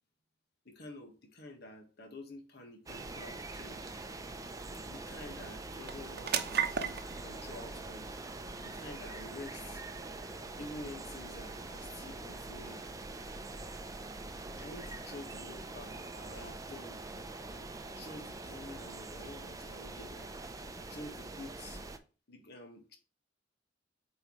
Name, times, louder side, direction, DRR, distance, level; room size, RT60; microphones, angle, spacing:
voice 1, 0.6-3.9 4.8-8.2 8.6-9.8 10.6-12.8 14.6-17.0 17.4-20.3 20.9-21.8 22.3-23.0, left 2 dB, 60° left, 1.7 m, -49 dB
sound 1, 2.9-22.0, right 2 dB, 20° right, 0.6 m, -44 dB
sound 2, 3.2-17.7, right 8 dB, 60° right, 0.8 m, -44 dB
7.7 x 4.7 x 3.2 m
head